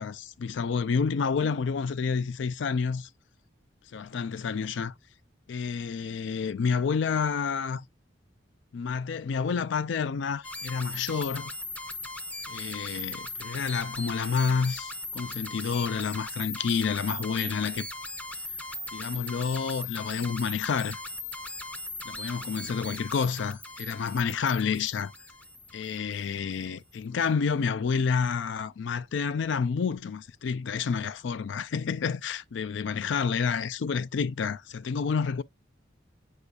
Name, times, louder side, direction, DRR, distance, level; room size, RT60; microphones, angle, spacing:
voice 1, 0.0-3.1 3.9-4.9 5.5-7.8 8.7-11.5 12.5-17.9 18.9-21.0 22.0-25.1 25.7-35.4, left 5 dB, 80° left, 0.4 m, -29 dB
sound 1, 10.4-26.3, left 2 dB, 5° left, 0.5 m, -39 dB
8.3 x 5.2 x 2.3 m
head